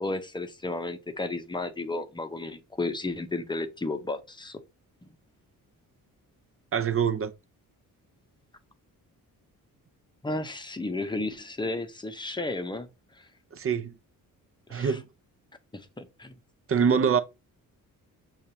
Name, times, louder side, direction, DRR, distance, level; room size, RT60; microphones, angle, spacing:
voice 1, 0.0-4.6 10.2-12.9 13.2-13.3 14.7-15.0 15.7-16.3, left 2 dB, 15° left, 0.7 m, -33 dB
voice 2, 6.7-7.3 13.5-13.9 14.7-15.0 16.7-17.2, right 7 dB, 40° right, 0.6 m, -24 dB
6.4 x 2.4 x 2.8 m
cardioid pair, 85°, 35 cm